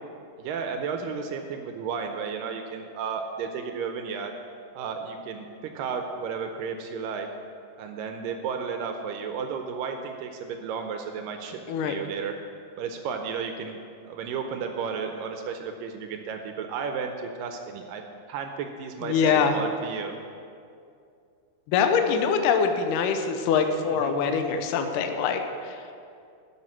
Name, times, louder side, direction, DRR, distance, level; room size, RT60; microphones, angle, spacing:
voice 1, 0.4-4.3 4.7-7.3 7.8-12.3 12.8-13.8 14.0-18.0 18.3-20.2 23.9-24.1, right 6 dB, 80° right, 5 dB, 2.1 m, -33 dB
voice 2, 19.0-19.5 21.7-25.8, left 6 dB, 75° left, 6 dB, 2.0 m, -24 dB
11.0 x 6.2 x 7.3 m, 2.4 s
omnidirectional pair, 4.4 m